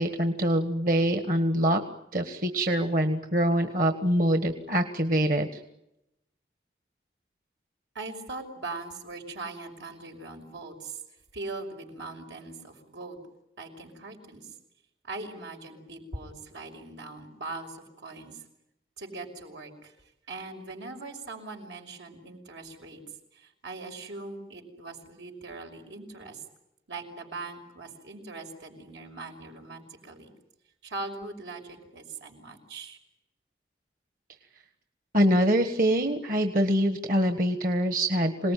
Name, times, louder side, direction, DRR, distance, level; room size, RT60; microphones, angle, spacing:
voice 1, 0.0-1.8 2.1-5.5 35.1-38.5, equal, 50° right, 6 dB, 1.5 m, -24 dB
voice 2, 7.9-11.0 11.3-13.2 13.6-14.5 15.0-18.4 19.0-19.9 20.3-23.0 23.3-26.4 26.9-30.3 30.8-33.0, right 3 dB, 90° right, 4 dB, 5.8 m, -41 dB
27.0 x 19.0 x 9.3 m, 0.86 s
head